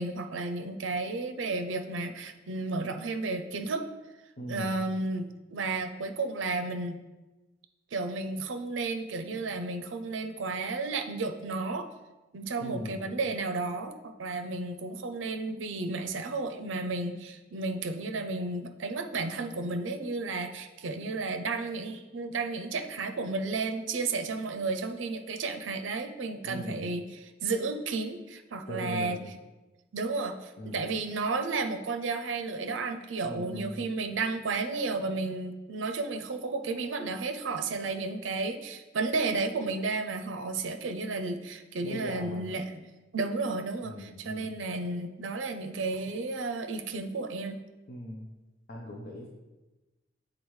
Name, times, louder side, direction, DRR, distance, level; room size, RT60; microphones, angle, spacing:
voice 1, 0.0-3.9 4.5-7.0 7.9-11.9 12.3-27.0 27.4-29.2 29.9-42.8 43.1-47.6, right 3 dB, 70° right, 7 dB, 0.5 m, -32 dB
voice 2, 4.4-4.8 12.6-13.1 26.4-26.9 28.7-29.3 30.6-30.9 33.2-33.8 41.8-42.5 43.8-44.6 47.9-48.3 48.7-49.3, left 1 dB, 50° left, -1 dB, 0.7 m, -39 dB
8.8 x 3.8 x 3.2 m, 1.1 s
head